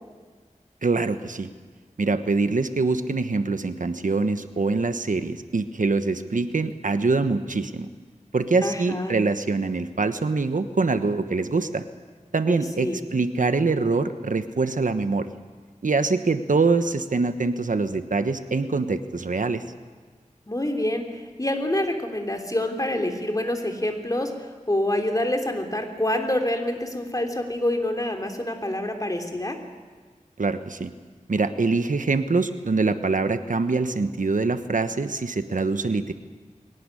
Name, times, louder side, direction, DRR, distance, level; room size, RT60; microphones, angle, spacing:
voice 1, 0.8-1.5 2.0-7.9 8.3-11.8 12.3-15.3 15.8-19.6 30.4-30.9 31.3-36.1, right 3 dB, 80° right, 10 dB, 1.2 m, -24 dB
voice 2, 8.6-9.2 12.5-13.0 20.5-29.6, left 1 dB, 25° left, 3 dB, 3.3 m, -27 dB
22.5 x 18.5 x 9.9 m, 1.5 s
wide cardioid pair, 60°, 13 cm